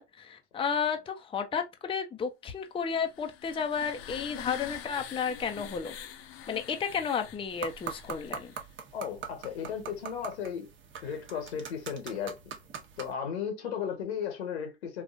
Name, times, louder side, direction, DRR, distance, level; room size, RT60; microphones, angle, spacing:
voice 1, 0.0-6.0 6.5-8.5, left 6 dB, 15° left, 0.6 m, -32 dB
sound 1, 2.9-8.7, left 9 dB, 70° left, 0.8 m, -45 dB
sound 2, 7.5-13.1, right 7 dB, 35° right, 1.0 m, -43 dB
voice 2, 8.9-10.7 11.0-12.5 13.0-15.0, left 7 dB, 90° left, 1.4 m, -35 dB
3.6 x 2.4 x 2.5 m
hypercardioid pair, 95°, 32 cm